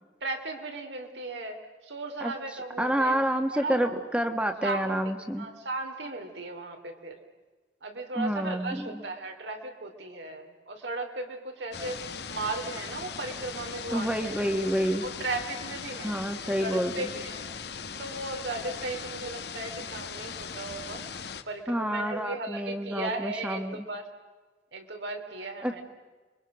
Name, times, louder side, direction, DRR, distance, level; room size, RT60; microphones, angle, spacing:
voice 1, 0.2-1.6 1.8-3.1 3.5-3.9 4.6-4.9 5.4-7.2 7.8-14.4 15.0-16.1 16.6-17.4 18.0-24.1 24.7-25.8, right 2 dB, 85° right, 4 dB, 3.3 m, -36 dB
voice 2, 2.8-5.5 8.1-9.0 13.9-15.0 16.0-17.1 21.7-23.8 25.6-25.8, equal, 5° right, 6 dB, 1.4 m, -28 dB
sound 1, 11.7-21.4, left 6 dB, 65° left, 1.3 m, -39 dB
30.0 x 23.5 x 6.3 m, 1.3 s
head